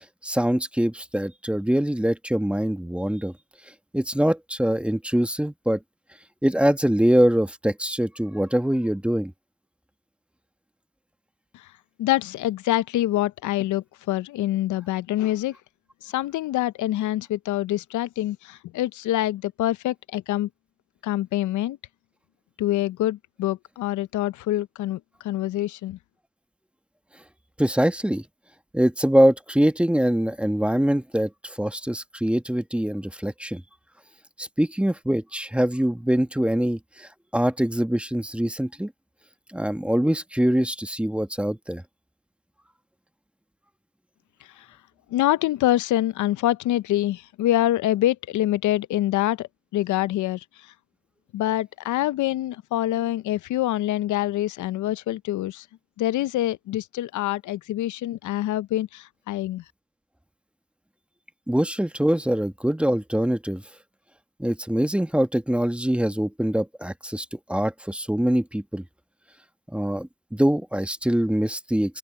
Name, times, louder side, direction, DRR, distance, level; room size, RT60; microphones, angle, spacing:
voice 1, 0.2-3.3 3.9-5.8 6.4-9.3 27.6-28.2 28.7-33.6 34.4-38.9 39.5-41.8 61.5-63.6 64.4-68.8 69.7-72.0, equal, 5° right, 1.2 m, -23 dB
voice 2, 12.0-15.6 16.0-20.5 21.0-21.8 22.6-26.0 44.6-44.7 45.1-50.7 51.3-55.7 56.0-59.6, left 14 dB, 75° left, 0.6 m, -25 dB
open air
cardioid pair, 90°, 30 cm